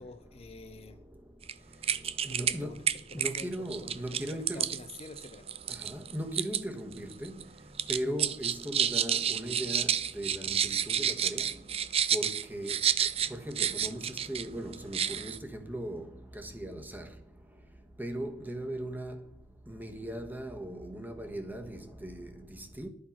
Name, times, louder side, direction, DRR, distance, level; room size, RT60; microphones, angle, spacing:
voice 1, 0.0-1.0 2.3-2.8 3.1-5.5, left 3 dB, 35° left, 0.7 m, -48 dB
voice 2, 0.6-4.8 5.6-22.9, right 1 dB, 10° right, 1.2 m, -39 dB
sound 1, 1.4-1.5 1.8-2.6 2.9-6.6 6.9-7.4 7.8-14.4 14.7-15.4, right 8 dB, 35° right, 0.5 m, -30 dB
11.5 x 8.7 x 5.9 m
head